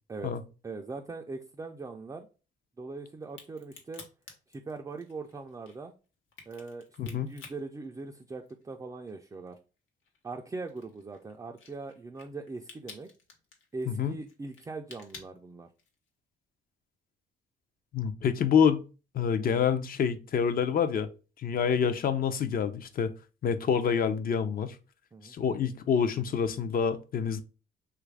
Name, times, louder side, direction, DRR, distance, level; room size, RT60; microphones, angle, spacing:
voice 1, 0.6-2.3 2.8-4.0 4.5-5.9 6.5-9.6 10.2-13.1 13.7-15.7 25.1-25.4, right 3 dB, 15° right, 3 dB, 0.3 m, -41 dB
Crack, 3.2-8.7 9.1-16.1, left 5 dB, 85° left, 0.9 m, -52 dB
voice 2, 7.0-7.3 13.9-14.1 17.9-18.8 19.1-21.1 21.4-23.1 23.4-24.7 25.2-27.4, left 7 dB, 50° left, 11 dB, 0.5 m, -27 dB
3.3 x 2.4 x 3.1 m, 0.33 s
cardioid pair, 90°, 20 cm